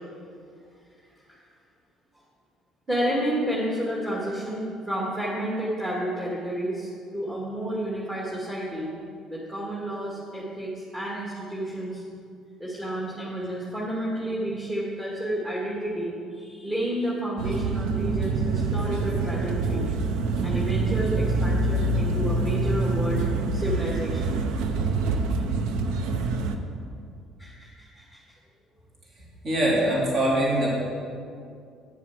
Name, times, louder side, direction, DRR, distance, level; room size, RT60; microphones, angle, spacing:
voice 1, 2.9-8.9 9.3-12.0 12.6-20.0 20.4-24.5 27.4-28.2, right 1 dB, 20° right, -6 dB, 2.2 m, -31 dB
sound 1, 17.4-26.6, right 3 dB, 75° right, 0.7 m, -25 dB
voice 2, 29.4-30.8, right 1 dB, 45° right, -5 dB, 2.9 m, -23 dB
9.3 x 7.3 x 6.1 m, 2.4 s
supercardioid pair, 70°, 0 cm